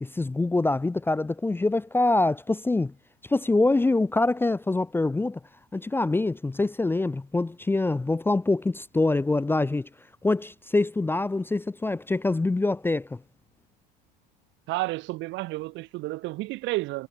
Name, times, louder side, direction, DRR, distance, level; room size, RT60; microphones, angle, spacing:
voice 1, 0.0-2.9 3.3-5.4 5.7-9.9 10.2-13.2, left 2 dB, 10° left, 0.6 m, -25 dB
voice 2, 14.7-17.1, right 20 dB, 60° right, 1.3 m, -31 dB
supercardioid pair, 90°, 21 cm